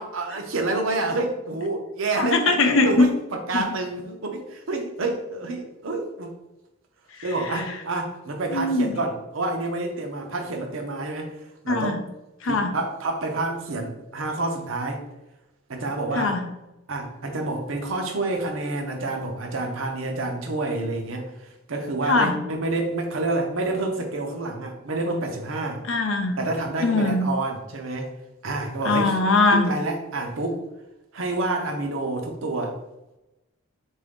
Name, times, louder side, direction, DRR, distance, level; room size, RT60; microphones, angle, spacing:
voice 1, 0.0-2.5 2.8-6.4 7.2-12.0 12.5-15.0 15.7-16.3 16.9-25.8 26.4-28.1 28.4-29.1 29.5-30.6 31.1-32.8, right 2 dB, 70° right, 3 dB, 0.7 m, -28 dB
voice 2, 2.2-3.1 3.5-3.7 7.1-7.7 8.5-8.9 11.7-12.0 12.4-12.8 16.1-16.4 22.0-22.4 25.8-26.4 26.8-27.3 28.8-29.7, left 3 dB, 70° left, 5 dB, 0.6 m, -21 dB
3.8 x 2.6 x 3.6 m, 0.95 s
head